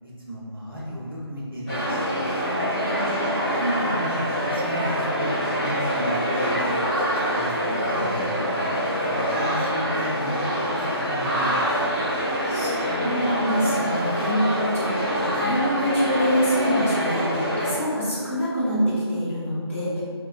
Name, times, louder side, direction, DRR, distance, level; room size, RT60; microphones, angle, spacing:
voice 1, 0.0-2.3 3.6-7.0 7.3-8.5 9.0-11.7, equal, 55° right, -7 dB, 0.8 m, -33 dB
sound 1, 1.7-17.7, equal, 10° left, 1.5 m, -25 dB
voice 2, 2.4-3.1 12.5-20.0, equal, 30° left, -11 dB, 0.7 m, -26 dB
3.1 x 2.1 x 2.4 m, 2.1 s
figure-of-eight pair, 175°, 14 cm